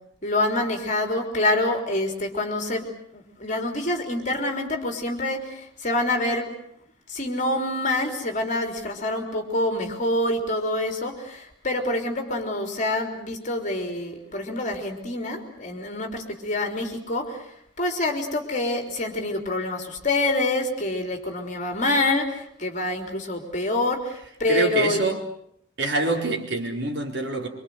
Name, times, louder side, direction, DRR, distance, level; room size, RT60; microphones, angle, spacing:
voice 1, 0.2-6.5 7.1-17.5 17.8-25.1, left 2 dB, 35° left, 3.8 m, -26 dB
voice 2, 24.5-25.3 25.8-27.5, right 2 dB, 60° right, 4.6 m, -25 dB
25.0 x 25.0 x 8.0 m
head